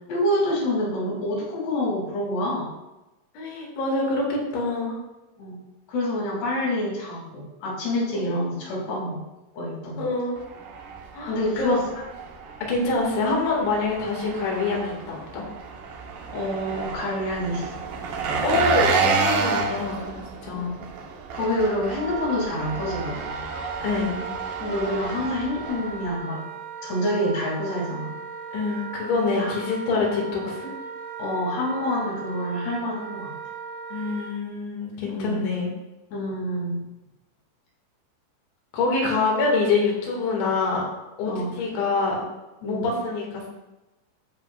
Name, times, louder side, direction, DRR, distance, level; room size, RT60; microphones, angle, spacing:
voice 1, 0.1-2.7 5.4-5.6 5.9-9.2 9.5-10.1 11.3-11.8 16.3-17.8 20.5-20.7 21.3-23.2 24.6-26.5 26.8-28.1 29.3-29.5 31.2-33.3 35.0-35.4 36.1-36.8 41.2-41.5 42.6-42.9, left 1 dB, 65° left, -4 dB, 4.7 m, -27 dB
voice 2, 3.4-5.0 8.1-8.6 10.0-10.4 11.1-11.8 12.7-15.4 18.4-20.8 23.8-24.2 28.5-30.7 33.9-35.7 38.7-40.8 41.2-41.3 41.6-42.2 42.6-43.5, left 3 dB, 85° left, -1 dB, 4.4 m, -25 dB
Engine, 10.4-26.2, right 4 dB, 70° right, 2.2 m, -30 dB
Wind instrument woodwind instrument, 21.9-34.3, right 5 dB, 55° right, 3.1 m, -37 dB
13.5 x 7.9 x 2.4 m, 1.0 s
omnidirectional pair, 5.2 m